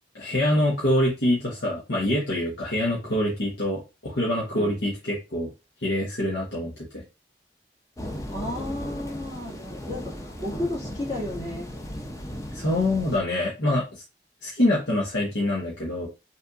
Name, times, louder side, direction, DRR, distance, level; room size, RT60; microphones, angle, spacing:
voice 1, 0.1-5.5 5.8-7.0 12.5-14.0 14.4-16.1, left 1 dB, 85° left, -4 dB, 1.3 m, -25 dB
voice 2, 4.5-4.8 8.3-11.7, left 1 dB, 40° left, -2 dB, 2.1 m, -33 dB
sound 1, 8.0-13.2, equal, 20° left, 0.7 m, -36 dB
5.5 x 3.4 x 2.5 m, 0.27 s
head